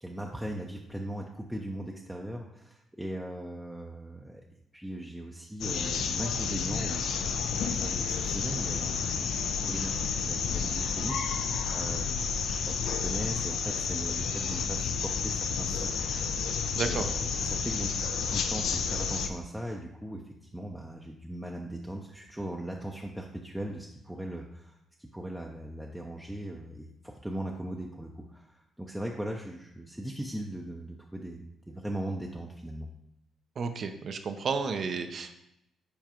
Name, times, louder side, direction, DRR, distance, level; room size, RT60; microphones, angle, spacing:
voice 1, 0.0-4.4 4.7-15.9 16.3-16.5 16.9-32.9, right 1 dB, 5° right, 0 dB, 0.6 m, -39 dB
sound 1, 5.6-19.3, left 5 dB, 75° left, 0.5 m, -31 dB
voice 2, 16.7-17.1 33.6-35.3, right 5 dB, 50° right, 8 dB, 0.6 m, -32 dB
7.0 x 4.6 x 3.0 m, 0.83 s
cardioid pair, 90°, 0 cm